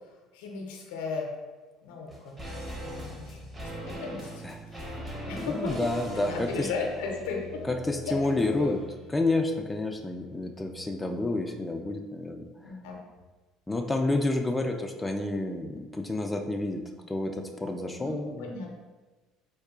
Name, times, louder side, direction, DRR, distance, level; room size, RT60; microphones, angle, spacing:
voice 1, 0.3-1.3 1.8-4.9 5.2-7.6 8.0-8.7 12.6-13.0 18.0-18.7, left 4 dB, 80° left, 0 dB, 0.6 m, -36 dB
sound 1, 2.1-11.5 11.7-11.8, equal, 20° right, 0.9 m, -42 dB
voice 2, 5.4-6.7 7.7-8.8 9.1-12.7 13.7-16.8 17.1-18.5, left 2 dB, 15° left, 3 dB, 0.3 m, -29 dB
4.4 x 2.3 x 2.3 m, 1.2 s
hypercardioid pair, 70°, 0 cm